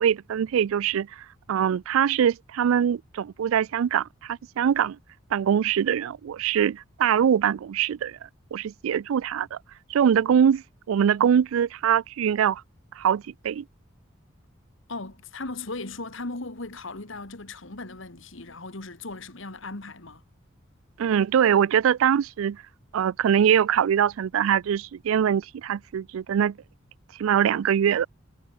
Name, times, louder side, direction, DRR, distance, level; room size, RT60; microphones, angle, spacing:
voice 1, 0.0-5.0 5.3-8.2 8.5-9.6 9.9-12.6 13.0-13.6 21.0-22.6 22.9-26.6 27.2-28.1, right 8 dB, 85° right, 0.3 m, -23 dB
voice 2, 14.9-20.2, left 3 dB, 75° left, 2.1 m, -37 dB
head